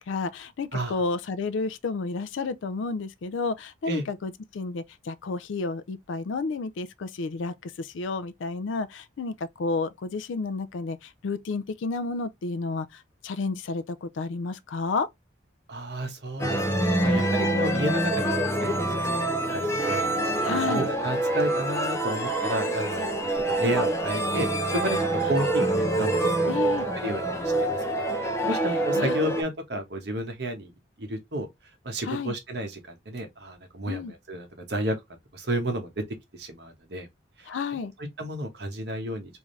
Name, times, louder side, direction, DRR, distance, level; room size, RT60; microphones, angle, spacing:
voice 1, 0.1-15.1 20.4-20.9 26.5-26.9 28.5-28.6 28.9-29.2 32.0-32.4 33.9-34.1 37.5-37.9, left 4 dB, 85° left, 0.4 m, -31 dB
voice 2, 15.7-18.3 18.6-20.1 20.4-26.7 26.9-30.7 31.0-31.5 31.8-35.0 35.3-36.0 36.3-37.1 37.4-37.5 38.0-39.4, right 1 dB, 60° right, 1.0 m, -32 dB
sound 1, 16.4-29.4, right 1 dB, 15° left, 0.6 m, -26 dB
3.5 x 2.6 x 3.2 m
head